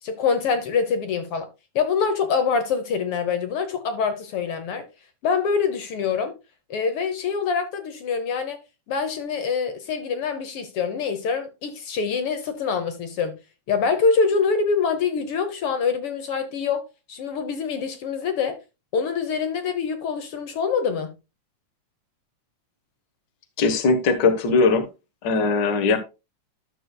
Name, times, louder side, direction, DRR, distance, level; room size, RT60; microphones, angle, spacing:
voice 1, 0.0-1.5 1.7-4.9 5.2-6.3 6.7-8.6 8.9-13.4 13.7-18.6 18.9-21.1, left 5 dB, 70° left, 1.4 m, -25 dB
voice 2, 23.6-24.9 25.2-26.0, left 4 dB, 85° left, 0.9 m, -20 dB
12.5 x 6.6 x 2.3 m
omnidirectional pair, 3.7 m